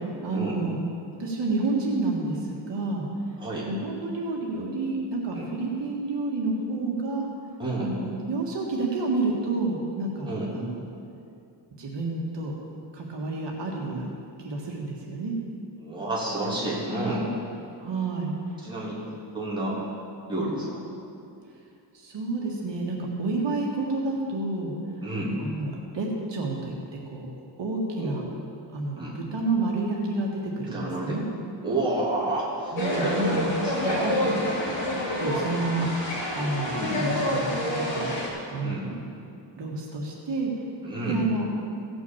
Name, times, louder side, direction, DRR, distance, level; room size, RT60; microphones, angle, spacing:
voice 1, 0.2-0.8 1.2-3.1 3.7-7.3 7.8-10.3 10.6-10.8 11.8-12.5 12.9-14.1 14.4-15.4 17.8-18.4 21.9-24.7 25.4-26.8 27.1-27.3 27.6-28.2 28.7-31.2 32.7-33.5 33.8-34.1 35.2-38.1 38.5-38.9 39.6-40.5 41.1-41.5, right 2 dB, 70° right, -2 dB, 1.8 m, -29 dB
voice 2, 7.6-7.9 10.3-10.5 15.8-17.3 18.6-19.0 19.3-19.8 20.3-20.8 25.0-25.4 28.0-28.2 29.0-29.1 30.7-31.2 31.6-33.3 33.6-34.4 36.7-37.0 38.6-38.8 40.8-41.2, right 1 dB, 10° right, -8 dB, 3.1 m, -30 dB
sound 1, 32.8-38.3, left 1 dB, 70° left, 3.3 m, -28 dB
16.5 x 6.2 x 7.2 m, 2.6 s
wide cardioid pair, 170°, 44 cm